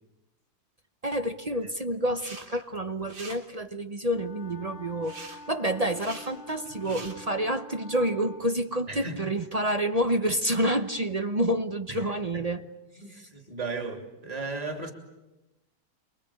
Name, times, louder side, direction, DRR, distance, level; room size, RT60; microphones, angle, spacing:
voice 1, 1.0-12.6 13.1-13.3, right 1 dB, 35° right, 8 dB, 0.5 m, -28 dB
sound 1, 2.1-2.5 2.8-3.4 5.0-5.4 5.9-6.3 6.7-7.1, right 3 dB, 65° right, 4.0 m, -43 dB
Wind instrument woodwind instrument, 4.1-8.5, left 1 dB, 40° left, 1.0 m, -47 dB
voice 2, 8.9-9.2 11.9-12.5 13.0-14.9, right 3 dB, 20° right, 4 dB, 2.9 m, -36 dB
28.0 x 22.5 x 8.7 m, 1.0 s
omnidirectional pair, 2.2 m